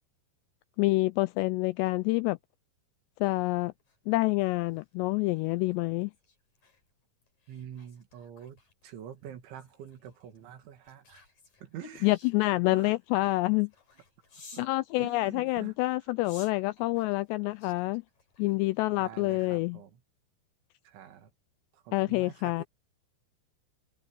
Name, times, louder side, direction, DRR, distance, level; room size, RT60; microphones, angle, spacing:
voice 1, 0.8-2.4 3.2-3.7 4.1-6.1 12.0-13.7 14.6-18.0 18.4-19.8 21.9-22.6, left 21 dB, 85° left, 2.5 m, -27 dB
sound 1, 3.6-14.8 15.4-19.0 19.4-19.7, left 4 dB, 40° left, 7.3 m, -58 dB
voice 2, 7.5-11.2 11.6-12.1 12.5-12.9 14.5-14.7 15.0-15.7 18.9-20.0 20.8-21.3 21.7-22.6, right 10 dB, 80° right, 4.6 m, -46 dB
omnidirectional pair, 5.4 m